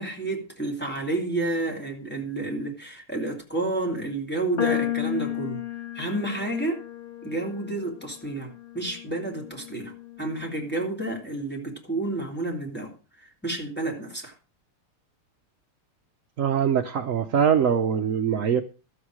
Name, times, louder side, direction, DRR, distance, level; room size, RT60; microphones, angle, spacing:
voice 1, 0.0-5.6 5.9-6.8 7.2-9.9 10.2-12.9 13.2-14.3, right 2 dB, 5° left, 3.3 m, -30 dB
sound 1, 4.6-10.9, left 12 dB, 35° left, 1.0 m, -34 dB
voice 2, 16.4-18.6, right 8 dB, 70° right, 0.7 m, -23 dB
13.0 x 8.1 x 6.2 m
omnidirectional pair, 2.4 m